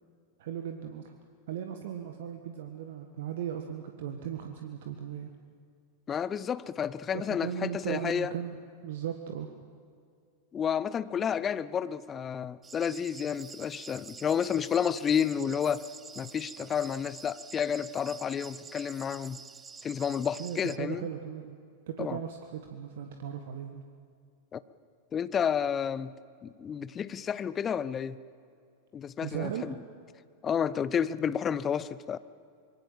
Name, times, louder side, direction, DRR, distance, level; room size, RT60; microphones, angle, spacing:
voice 1, 0.4-1.1 1.5-5.3 7.1-8.6 8.8-9.5 20.4-21.6 21.9-23.8 29.2-29.6, right 9 dB, 55° right, 6 dB, 1.6 m, -37 dB
voice 2, 6.1-8.3 10.5-15.8 16.1-19.4 19.8-21.1 22.0-22.2 24.5-24.6 25.1-26.1 26.4-28.2 28.9-29.7 30.4-32.2, left 8 dB, 25° left, 16 dB, 0.8 m, -30 dB
sound 1, 12.6-20.8, right 5 dB, 15° right, 0.7 m, -47 dB
26.0 x 22.0 x 7.5 m, 2.4 s
figure-of-eight pair, 90°, 0 cm